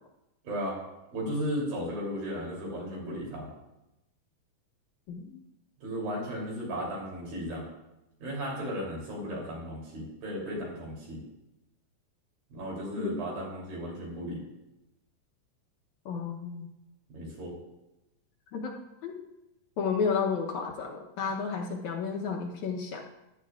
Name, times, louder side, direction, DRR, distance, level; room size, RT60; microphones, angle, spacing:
voice 1, 0.4-0.7 1.1-3.5 5.8-7.7 8.2-11.2 12.5-14.4 17.1-17.5, equal, 85° right, -3 dB, 4.8 m, -35 dB
voice 2, 5.1-5.4 13.0-13.2 16.1-16.7 18.5-19.2 19.8-23.0, left 5 dB, 70° left, 0 dB, 1.9 m, -32 dB
15.5 x 11.0 x 2.4 m, 0.94 s
omnidirectional pair, 4.0 m